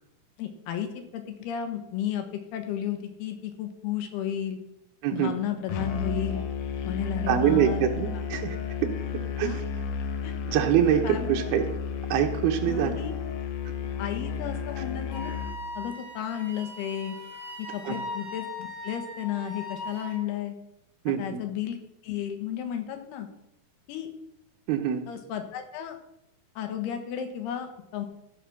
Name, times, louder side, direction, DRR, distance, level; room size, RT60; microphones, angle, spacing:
voice 1, 0.4-2.2 2.5-4.6 5.1-6.4 6.8-7.8 9.4-9.6 10.2-10.4 11.0-11.4 12.7-13.1 14.0-15.3 15.8-17.2 17.6-20.6 21.1-21.8 22.0-23.3 23.9-24.1 25.1-26.0 26.6-28.1, left 9 dB, 85° left, 6 dB, 3.2 m, -33 dB
Musical instrument, 5.7-15.6, left 7 dB, 70° left, 2.1 m, -32 dB
voice 2, 7.3-8.6 9.4-9.5 10.5-11.7 12.1-12.9 17.8-18.0 21.1-21.4 24.7-25.0, right 10 dB, 80° right, 3 dB, 2.9 m, -24 dB
Wind instrument woodwind instrument, 15.1-20.2, left 2 dB, 15° right, 0.9 m, -39 dB
14.5 x 5.0 x 6.0 m, 0.82 s
omnidirectional pair, 4.5 m